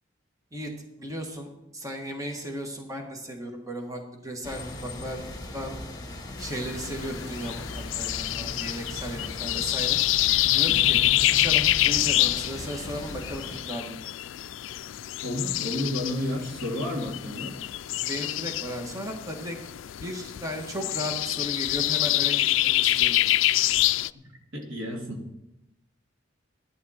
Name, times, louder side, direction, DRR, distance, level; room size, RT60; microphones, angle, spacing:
voice 1, 1.0-5.3 5.5-5.8 6.4-7.6 8.0-10.0 10.5-14.0 18.0-19.6 20.0-23.6, equal, 15° right, 2 dB, 1.6 m, -36 dB
sound 1, 4.4-13.6, left 1 dB, 20° left, 2.1 m, -38 dB
sound 2, 6.4-24.1, left 16 dB, 70° left, 0.3 m, -26 dB
voice 2, 10.7-11.0 15.2-17.6 24.1-24.2 24.5-25.2, left 1 dB, 80° right, 0 dB, 2.7 m, -31 dB
15.5 x 11.5 x 4.3 m, 0.90 s
head